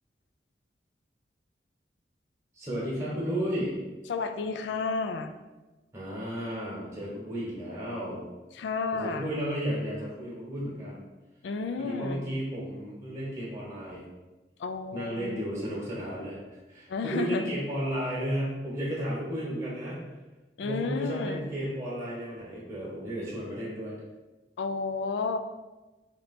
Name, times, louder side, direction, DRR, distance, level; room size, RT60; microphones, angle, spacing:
voice 1, 2.5-3.7 5.9-8.2 8.9-11.0 11.8-14.0 14.9-16.4 16.7-20.0 20.6-24.0, equal, 15° right, -5 dB, 1.0 m, -33 dB
voice 2, 4.1-5.4 8.5-9.3 11.4-12.2 14.6-15.4 16.9-17.5 20.6-21.4 24.6-25.4, left 4 dB, 90° left, 8 dB, 0.3 m, -31 dB
3.2 x 2.9 x 4.1 m, 1.1 s
head